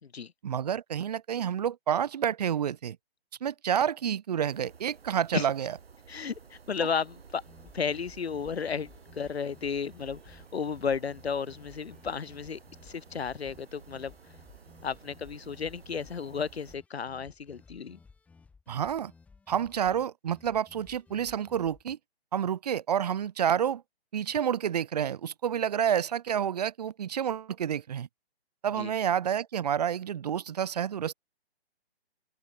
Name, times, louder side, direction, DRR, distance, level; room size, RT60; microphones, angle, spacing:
voice 1, 0.4-3.0 3.4-5.7 18.7-19.1 19.5-22.0 22.3-23.8 24.1-28.1 28.6-31.1, right 9 dB, 40° right, 2.6 m, -29 dB
sound 1, 4.5-16.8, right 6 dB, 65° right, 6.7 m, -54 dB
voice 2, 6.1-7.4 7.7-14.1 14.8-18.0 28.8-28.9, left 6 dB, 75° left, 2.3 m, -33 dB
sound 2, 7.4-22.0, left 4 dB, 5° left, 5.0 m, -57 dB
open air
hypercardioid pair, 170°, 32 cm